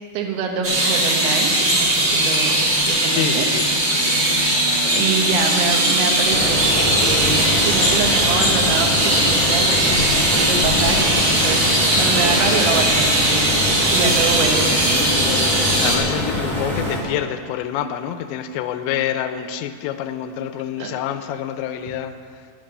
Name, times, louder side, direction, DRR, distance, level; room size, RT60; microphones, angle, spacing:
voice 1, 0.2-2.6 2.9-3.5 4.9-14.8 20.8-20.9, right 5 dB, 75° right, 3 dB, 3.5 m, -25 dB
sound 1, 0.6-16.0, right 1 dB, 45° right, 1.0 m, -19 dB
sound 2, 1.5-11.1, left 5 dB, 60° left, 1.8 m, -32 dB
voice 2, 3.1-3.7 3.9-4.2 4.8-5.1 15.1-15.5 15.8-22.1, left 10 dB, 85° left, 9 dB, 2.6 m, -27 dB
sound 3, 6.3-17.0, left 1 dB, 15° left, 1.3 m, -25 dB
11.5 x 11.0 x 6.5 m, 2.3 s
omnidirectional pair, 5.6 m